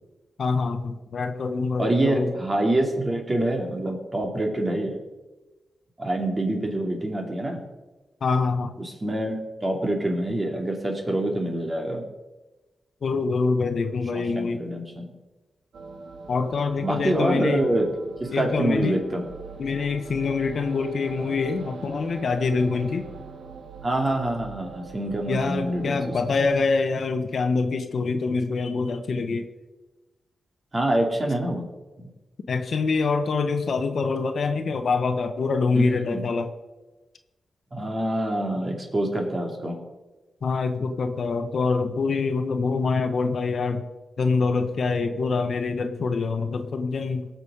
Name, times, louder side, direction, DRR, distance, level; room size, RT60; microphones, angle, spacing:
voice 1, 0.4-2.3 8.2-8.7 13.0-14.6 16.3-17.7 18.3-19.0 19.6-23.2 25.3-29.5 32.5-36.5 40.4-43.8 44.2-47.3, left 4 dB, 65° left, 8 dB, 1.0 m, -25 dB
voice 2, 1.8-5.0 6.0-7.6 8.8-12.0 14.1-15.1 16.8-17.9 18.2-19.3 23.8-26.1 30.7-31.7 35.7-36.2 37.7-39.8, right 1 dB, 30° right, 1 dB, 2.7 m, -26 dB
sound 1, 15.7-26.7, right 4 dB, 80° right, 1.1 m, -42 dB
18.0 x 6.3 x 5.0 m, 1.1 s
cardioid pair, 85°, 0 cm